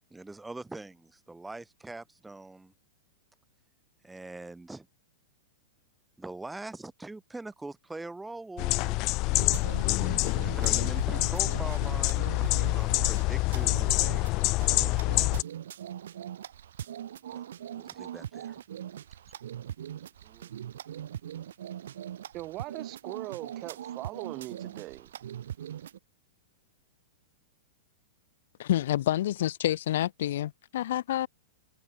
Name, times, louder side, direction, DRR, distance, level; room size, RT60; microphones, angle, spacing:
voice 1, 0.1-2.7 4.0-4.9 6.2-9.1 10.3-14.7 17.3-17.4 17.7-18.6, right 2 dB, 5° right, 3.9 m, -43 dB
sound 1, 8.6-15.4, left 23 dB, 40° left, 1.2 m, -26 dB
sound 2, 9.3-26.0, right 10 dB, 80° right, 7.6 m, -41 dB
voice 2, 20.2-20.6 22.3-25.1, right 18 dB, 35° right, 5.2 m, -40 dB
voice 3, 28.6-31.3, left 13 dB, 70° left, 0.8 m, -28 dB
hypercardioid pair, 140°, 0 cm